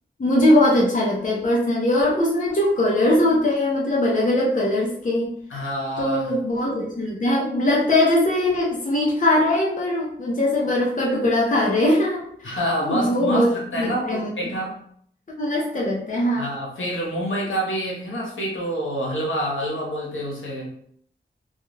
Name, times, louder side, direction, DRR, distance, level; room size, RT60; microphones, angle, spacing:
voice 1, 0.2-5.3 6.0-12.6 12.9-13.5 13.8-14.3 15.4-16.4, left 1 dB, 40° left, -4 dB, 0.7 m, -21 dB
voice 2, 5.5-6.3 12.4-14.8 16.4-20.7, equal, 75° left, -3 dB, 1.0 m, -27 dB
2.3 x 2.3 x 3.1 m, 0.64 s
wide cardioid pair, 55°, 20 cm